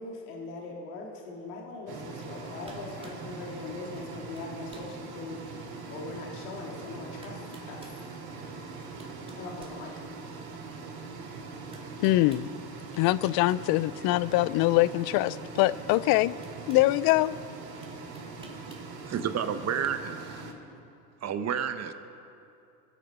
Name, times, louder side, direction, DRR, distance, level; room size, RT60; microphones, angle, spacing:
voice 1, 0.0-8.1 9.4-9.9, left 3 dB, 75° left, -1 dB, 2.4 m, -41 dB
sound 1, 1.9-20.5, right 4 dB, 50° right, 2.9 m, -42 dB
sound 2, 2.2-2.4 2.6-3.2 4.0-4.1 4.4-4.9 5.5-5.6 6.7-6.8 7.2-8.0 8.7-10.4 11.7-12.5 12.9-13.6 13.9-14.1 15.5-15.6 16.1-16.9 17.8-18.9, right 2 dB, 10° right, 2.1 m, -53 dB
voice 2, 12.0-12.5 13.0-16.3 16.7-17.4, left 17 dB, 50° left, 18 dB, 0.5 m, -23 dB
voice 3, 19.1-20.4 21.2-21.9, right 8 dB, 35° right, 9 dB, 1.1 m, -30 dB
24.0 x 8.0 x 5.5 m, 2.6 s
hypercardioid pair, 90°, 46 cm